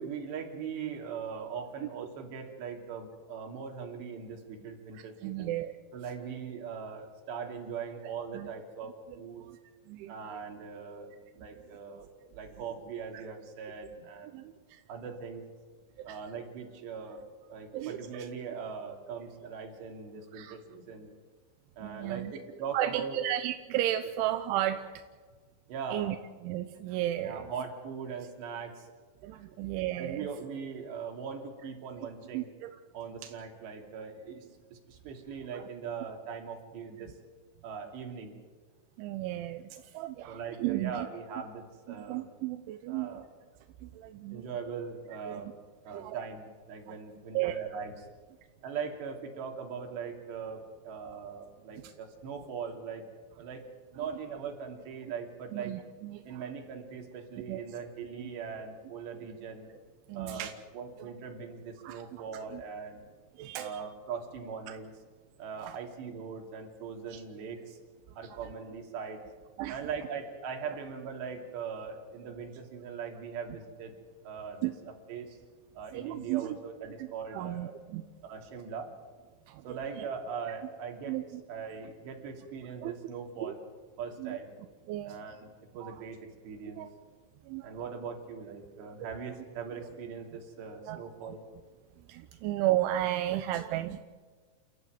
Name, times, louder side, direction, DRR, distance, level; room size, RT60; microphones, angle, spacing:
voice 1, 0.0-5.5 5.9-9.4 10.1-12.1 12.3-14.4 14.9-15.4 16.0-21.1 21.8-23.2 25.7-26.1 27.2-28.9 30.0-32.5 32.9-37.1 37.6-38.3 40.3-42.3 42.9-43.3 44.3-45.5 45.8-48.1 48.6-53.1 53.4-53.6 53.9-55.7 56.2-59.7 60.2-60.5 60.7-63.0 63.6-64.9 65.4-67.8 68.2-69.2 69.7-73.9 74.2-74.7 75.1-75.4 75.7-77.7 78.2-78.9 79.6-81.2 81.5-83.6 84.0-84.5 85.0-86.2 86.4-86.9 87.6-91.4 92.3-92.4, right 6 dB, 65° right, 2 dB, 4.9 m, -40 dB
voice 2, 4.9-5.8 8.3-8.5 9.4-9.6 9.9-10.1 13.1-13.2 14.3-14.8 16.0-16.2 17.7-18.3 20.3-20.6 21.8-22.3 22.7-25.0 25.9-26.2 26.4-27.5 29.2-30.3 32.3-32.7 33.2-33.3 35.5-35.7 39.0-41.1 41.9-43.1 43.8-44.5 45.3-45.4 45.9-46.2 47.3-47.5 51.8-51.9 55.5-56.4 57.5-57.6 58.2-58.3 60.1-60.5 61.8-62.2 62.5-62.6 63.4-63.9 65.6-65.8 67.1-67.2 69.6-69.8 74.6-74.7 75.9-76.5 77.0-77.1 77.3-78.0 79.5-79.8 81.0-81.2 82.8-82.9 83.4-83.5 84.2-84.4 84.9-85.2 85.8-86.0 86.7-86.9 87.4-87.7 89.0-89.1 90.9-91.0 92.1-94.0, right 14 dB, 85° right, 8 dB, 3.3 m, -34 dB
29.0 x 14.5 x 9.4 m, 1.5 s
omnidirectional pair, 5.4 m